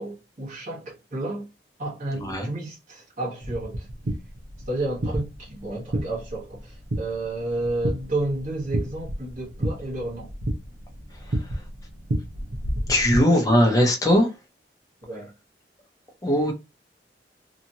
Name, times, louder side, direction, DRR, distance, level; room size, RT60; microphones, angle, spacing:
voice 1, 0.0-1.5 1.8-3.9 4.7-10.3 13.1-13.5 15.0-15.3, right 2 dB, 45° right, 1.1 m, -31 dB
sound 1, 3.4-13.2, right 1 dB, 85° right, 0.8 m, -31 dB
voice 2, 12.9-14.3 16.2-16.5, left 1 dB, 20° left, 0.8 m, -19 dB
2.9 x 2.5 x 2.7 m
head